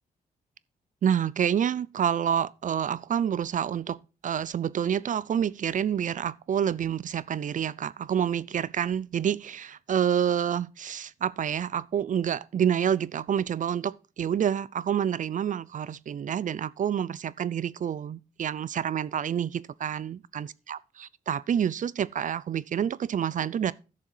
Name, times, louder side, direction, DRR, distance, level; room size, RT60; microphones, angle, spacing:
voice 1, 1.0-23.7, right 9 dB, 50° right, 0.5 m, -28 dB
12.0 x 6.9 x 4.6 m
cardioid pair, 70°, 16 cm